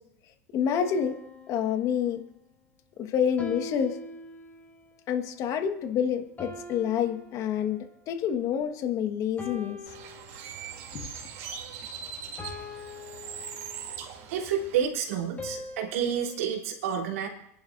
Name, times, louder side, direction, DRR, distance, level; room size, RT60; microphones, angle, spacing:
voice 1, 0.5-1.2 1.5-2.2 3.0-4.0 5.1-9.8 10.9-11.1, left 8 dB, 45° left, 7 dB, 1.4 m, -28 dB
sound 1, 0.7-2.3 3.4-4.9 6.4-8.1 9.4-10.9 12.4-14.1 15.4-16.4, left 2 dB, 20° left, 4.9 m, -43 dB
Bird, 9.9-14.9, right 7 dB, 60° right, 2.8 m, -41 dB
voice 2, 14.3-17.3, right 8 dB, 75° right, 0 dB, 3.0 m, -29 dB
29.5 x 11.0 x 2.6 m, 0.78 s
hypercardioid pair, 105°, 8 cm